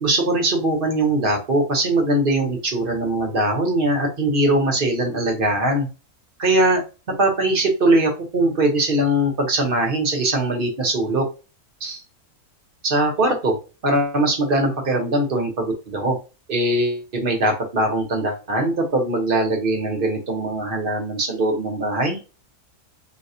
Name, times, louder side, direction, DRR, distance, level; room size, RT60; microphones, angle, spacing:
voice 1, 0.0-5.9 6.4-6.8 7.1-11.2 11.8-12.0 12.8-13.6 13.8-16.2 16.5-22.2, right 1 dB, 40° right, 2 dB, 1.0 m, -21 dB
4.1 x 2.3 x 2.7 m, 0.32 s
omnidirectional pair, 1.6 m